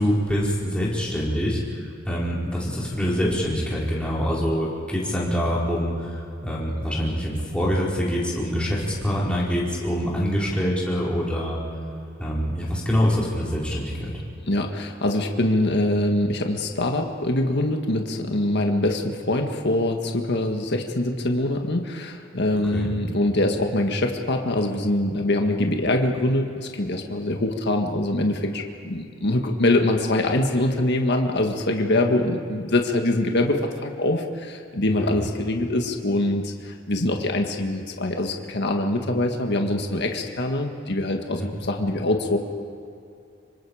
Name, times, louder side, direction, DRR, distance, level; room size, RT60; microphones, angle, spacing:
voice 1, 0.0-1.8 2.0-11.6 12.2-14.1 22.7-22.9 34.9-35.2 41.4-41.5, equal, 5° left, -6 dB, 5.0 m, -25 dB
voice 2, 14.5-42.4, left 1 dB, 55° left, 3 dB, 1.7 m, -24 dB
26.0 x 24.5 x 5.0 m, 2.6 s
head